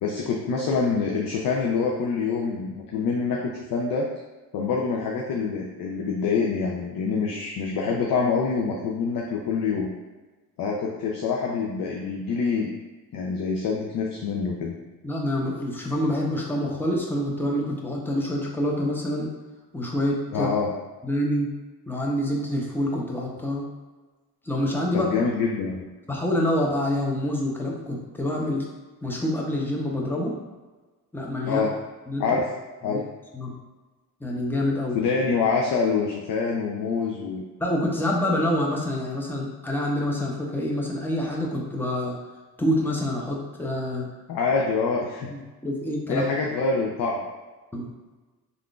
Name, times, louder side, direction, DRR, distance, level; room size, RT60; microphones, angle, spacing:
voice 1, 0.0-4.1 4.5-9.9 10.6-12.7 13.1-14.8 20.3-20.7 24.9-25.9 31.5-31.7 32.2-32.5 32.8-33.0 34.9-37.4 44.3-45.3 46.1-47.2, left 5 dB, 60° left, -1 dB, 0.5 m, -26 dB
voice 2, 15.0-19.3 19.7-20.5 21.0-21.5 21.9-23.7 24.4-25.1 26.1-28.7 29.0-30.4 31.1-31.6 32.1-32.2 32.8-33.0 33.3-33.5 34.2-35.0 37.6-42.2 42.6-44.1 45.3-46.2 47.7-47.9, left 1 dB, 5° left, -2 dB, 0.6 m, -26 dB
3.5 x 2.5 x 2.3 m, 1.2 s
cardioid pair, 80°, 39 cm